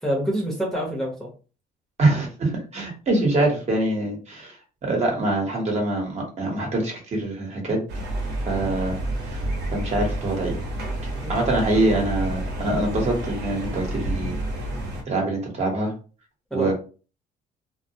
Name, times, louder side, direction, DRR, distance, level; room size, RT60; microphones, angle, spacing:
voice 1, 0.0-1.3 11.2-11.4 11.7-11.9 16.5-16.7, equal, ahead, -3 dB, 0.8 m, -27 dB
voice 2, 2.0-4.6 4.8-7.8 8.5-9.0 9.3-9.4 9.7-10.6 11.0-14.3 15.1-15.9 16.5-16.7, right 2 dB, 40° right, 0 dB, 1.0 m, -24 dB
sound 1, 7.9-15.0, right 1 dB, 80° right, 0.9 m, -29 dB
2.2 x 2.1 x 2.8 m, 0.36 s
cardioid pair, 110°, 17 cm